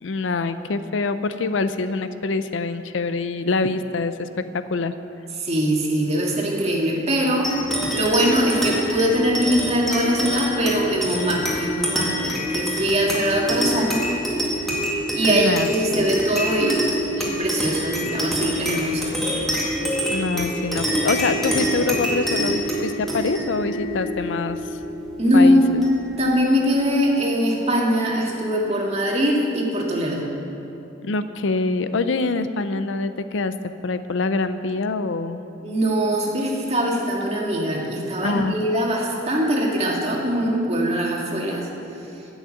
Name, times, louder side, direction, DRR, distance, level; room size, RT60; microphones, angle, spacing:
voice 1, 0.0-4.9 15.3-16.1 20.1-24.6 25.3-25.8 31.0-33.5 33.8-35.4 38.2-38.6, left 3 dB, 75° left, 11 dB, 0.5 m, -25 dB
voice 2, 5.4-7.6 7.9-14.0 15.1-16.9 17.2-19.1 25.2-25.7 26.2-30.3 35.6-41.7, equal, 35° right, -2 dB, 1.9 m, -22 dB
sound 1, 7.4-26.3, equal, ahead, 2.1 m, -26 dB
11.5 x 7.2 x 8.4 m, 2.8 s
head